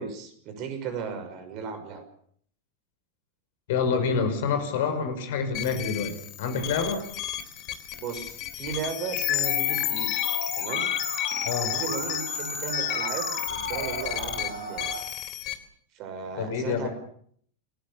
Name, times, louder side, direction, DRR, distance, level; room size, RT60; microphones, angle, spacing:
voice 1, 0.0-2.0 8.0-10.1 10.6-10.9 11.7-14.9 15.9-16.9, right 6 dB, 40° right, 9 dB, 6.1 m, -36 dB
voice 2, 3.7-7.0 11.4-11.7 16.4-16.9, left 5 dB, 55° left, 8 dB, 5.6 m, -27 dB
sound 1, 5.5-15.5, left 12 dB, 40° left, 3.2 m, -31 dB
Musical instrument, 9.4-15.0, right 2 dB, 65° right, 7.5 m, -36 dB
28.5 x 20.0 x 7.1 m, 0.62 s
figure-of-eight pair, 90°, 0 cm